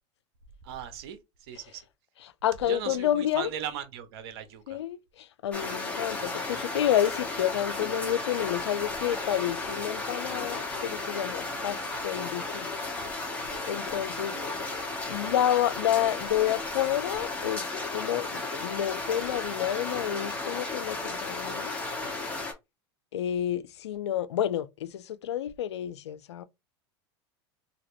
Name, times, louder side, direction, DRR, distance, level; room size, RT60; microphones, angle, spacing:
voice 1, 0.6-1.8 2.7-4.8 14.2-14.5, right 9 dB, 70° right, 0.8 m, -38 dB
voice 2, 2.2-3.5 4.7-12.9 13.7-14.4 15.1-21.7 23.1-26.4, left 11 dB, 85° left, 0.4 m, -29 dB
sound 1, 5.5-22.5, left 3 dB, 10° left, 1.3 m, -34 dB
2.8 x 2.6 x 3.1 m
hypercardioid pair, 95°, 14 cm